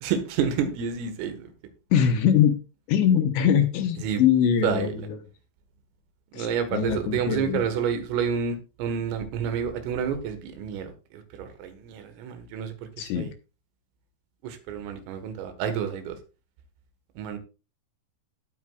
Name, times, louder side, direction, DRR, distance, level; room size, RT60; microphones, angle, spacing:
voice 1, 0.0-1.5 4.0-4.2 4.6-5.0 6.3-13.3 14.4-16.2 17.2-17.4, right 7 dB, 90° right, 8 dB, 4.2 m, -29 dB
voice 2, 1.9-2.6 2.9-5.2 6.3-7.6 13.0-13.3, left 8 dB, 75° left, 8 dB, 3.1 m, -22 dB
18.0 x 8.1 x 2.4 m, 0.30 s
omnidirectional pair, 5.7 m